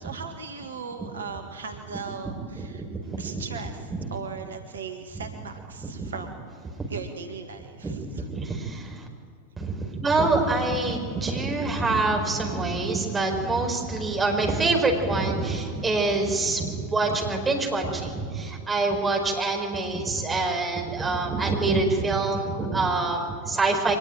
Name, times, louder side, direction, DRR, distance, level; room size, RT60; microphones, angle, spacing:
voice 1, 0.0-2.8 3.2-6.3 6.9-8.0, right 5 dB, 70° right, 6 dB, 1.7 m, -38 dB
voice 2, 2.5-3.4 3.9-4.1 5.1-5.3 5.8-6.1 6.8-6.9 7.8-9.1 9.6-24.0, right 3 dB, 15° right, 2 dB, 4.9 m, -26 dB
24.0 x 19.5 x 9.1 m, 2.2 s
figure-of-eight pair, 90°, 0 cm